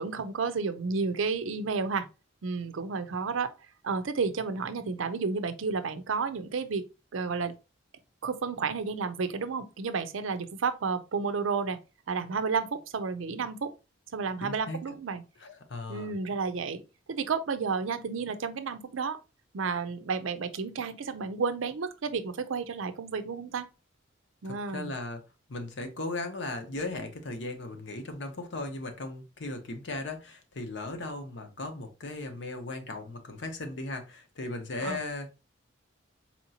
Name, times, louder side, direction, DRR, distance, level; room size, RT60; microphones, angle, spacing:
voice 1, 0.0-2.1 2.4-3.5 3.8-6.8 7.1-7.5 8.2-11.8 12.1-13.7 14.1-15.2 15.9-16.8 17.1-19.2 19.5-23.7 24.4-24.9 34.8-35.0, right 5 dB, 80° right, 0.5 m, -31 dB
voice 2, 14.4-14.8 15.4-16.1 24.4-25.2 25.5-35.3, left 2 dB, 65° left, 0.8 m, -37 dB
4.3 x 2.9 x 2.7 m
head